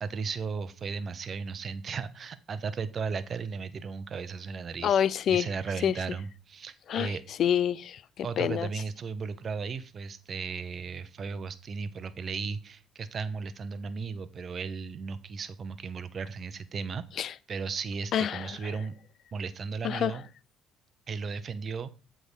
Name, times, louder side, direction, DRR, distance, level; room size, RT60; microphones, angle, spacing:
voice 1, 0.0-5.0 5.3-7.2 8.2-18.9 19.3-20.3 21.1-21.9, right 5 dB, 45° right, 0.9 m, -35 dB
voice 2, 4.8-5.5 5.8-6.0 6.9-8.7 17.2-17.3 18.1-18.5 19.8-20.1, left 9 dB, 60° left, 0.4 m, -27 dB
8.0 x 3.7 x 6.3 m
supercardioid pair, 70°, 0 cm